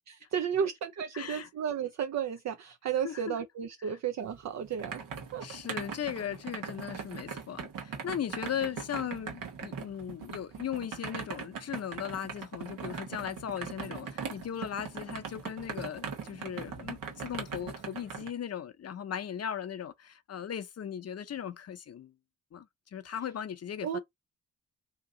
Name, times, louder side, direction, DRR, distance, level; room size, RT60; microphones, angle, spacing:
voice 1, 0.1-5.0 5.3-5.4 23.8-24.0, right 8 dB, 55° right, 0.5 m, -33 dB
voice 2, 1.1-1.5 3.0-3.4 3.8-3.9 5.4-22.1 22.5-24.0, left 9 dB, 50° left, 0.6 m, -38 dB
sound 1, 4.3-18.3, right 6 dB, 80° right, 1.1 m, -40 dB
2.9 x 2.6 x 3.7 m
cardioid pair, 80°, 33 cm